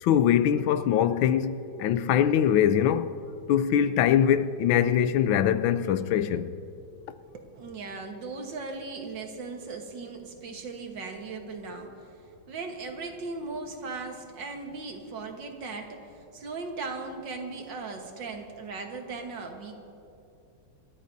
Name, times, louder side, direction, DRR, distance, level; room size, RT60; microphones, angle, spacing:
voice 1, 0.0-3.1 3.5-6.5, left 9 dB, 80° left, 1.4 m, -23 dB
voice 2, 7.3-12.0 12.5-19.7, right 4 dB, 65° right, 1.9 m, -38 dB
28.0 x 13.5 x 2.7 m
omnidirectional pair, 2.2 m